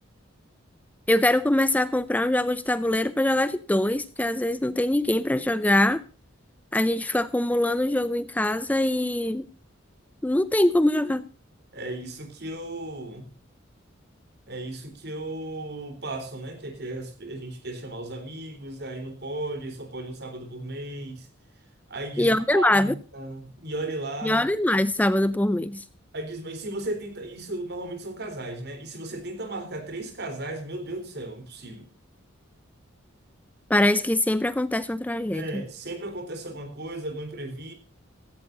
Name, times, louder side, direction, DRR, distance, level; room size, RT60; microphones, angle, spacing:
voice 1, 1.1-6.0 6.7-9.5 10.2-11.3 22.2-22.9 24.2-25.8 33.7-35.6, left 1 dB, 10° left, 14 dB, 0.5 m, -23 dB
voice 2, 11.7-13.3 14.5-21.3 21.9-24.4 26.1-31.9 35.3-37.7, right 2 dB, 55° right, 8 dB, 3.6 m, -35 dB
16.0 x 15.5 x 2.6 m, 0.38 s
head